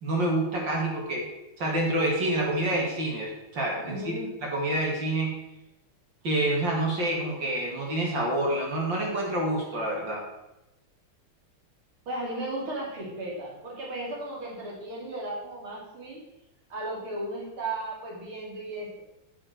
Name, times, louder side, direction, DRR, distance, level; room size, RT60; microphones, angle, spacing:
voice 1, 0.0-1.3 1.6-4.1 4.4-5.3 6.2-10.2, right 1 dB, 60° right, -2 dB, 3.1 m, -27 dB
voice 2, 3.8-4.3 12.1-16.2 16.7-18.9, right 2 dB, 75° right, -3 dB, 4.1 m, -35 dB
9.6 x 6.4 x 7.7 m, 0.93 s
omnidirectional pair, 2.3 m